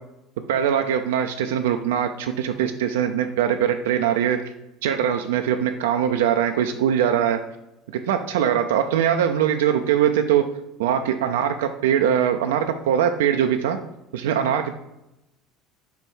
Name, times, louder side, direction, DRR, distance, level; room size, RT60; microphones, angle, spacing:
voice 1, 0.5-4.4 4.8-7.4 8.1-10.4 10.8-13.8 14.1-14.8, right 9 dB, 75° right, 6 dB, 0.4 m, -22 dB
5.2 x 4.6 x 4.5 m, 0.90 s
hypercardioid pair, 70°, 0 cm